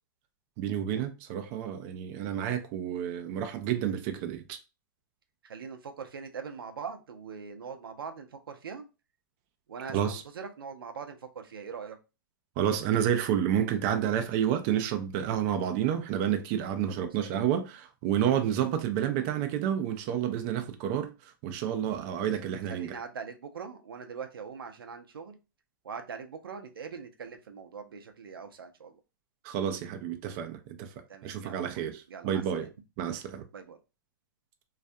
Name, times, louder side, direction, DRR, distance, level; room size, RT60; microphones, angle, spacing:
voice 1, 0.6-4.6 9.9-10.2 12.6-22.9 29.4-30.9 31.2-32.7 33.0-33.5, right 9 dB, 35° right, 0.4 m, -30 dB
voice 2, 5.4-8.9 9.7-12.0 16.9-17.4 22.1-22.3 22.6-25.4 25.8-29.0 31.1-32.7 33.5-33.8, right 6 dB, 90° right, 0.5 m, -42 dB
2.3 x 2.2 x 2.5 m
hypercardioid pair, 130°, 12 cm